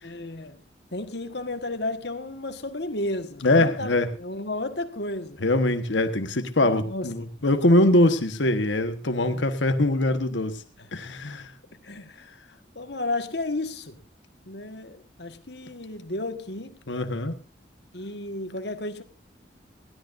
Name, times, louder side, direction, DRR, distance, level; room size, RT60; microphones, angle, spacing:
voice 1, 0.0-0.6 0.9-5.5 6.6-7.1 9.2-9.5 10.8-11.4 11.8-12.3 12.7-14.0 14.4-16.8 17.9-19.0, left 2 dB, 70° left, 1.6 m, -33 dB
voice 2, 3.4-4.1 5.4-10.6 10.9-11.5 16.9-17.4, left 1 dB, 90° left, 1.3 m, -22 dB
21.0 x 16.0 x 2.6 m
head